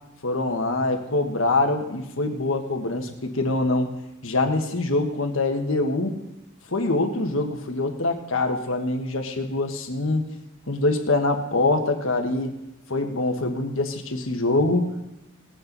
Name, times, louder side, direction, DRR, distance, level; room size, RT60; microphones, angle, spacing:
voice 1, 0.2-3.9 4.2-6.2 6.7-10.3 10.7-12.5 12.9-14.9, left 2 dB, 85° left, 4 dB, 1.4 m, -24 dB
19.0 x 8.8 x 4.0 m, 0.94 s
head